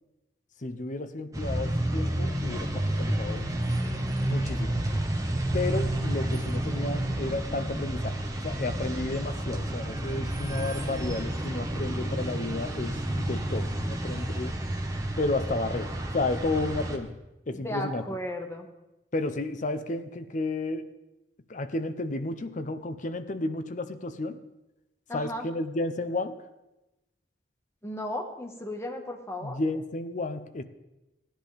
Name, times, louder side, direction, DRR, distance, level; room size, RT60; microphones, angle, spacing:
voice 1, 0.6-3.5 4.3-4.8 5.5-14.6 15.2-17.2 17.5-18.2 19.1-20.9 21.5-24.4 25.1-26.3 29.4-30.6, left 2 dB, 45° left, 10 dB, 0.7 m, -32 dB
sound 1, 1.3-17.0, right 1 dB, 20° right, 1.2 m, -30 dB
voice 2, 17.5-18.7 25.1-25.4 27.8-29.6, left 1 dB, 15° left, 2 dB, 1.4 m, -35 dB
17.0 x 10.0 x 3.4 m, 0.97 s
head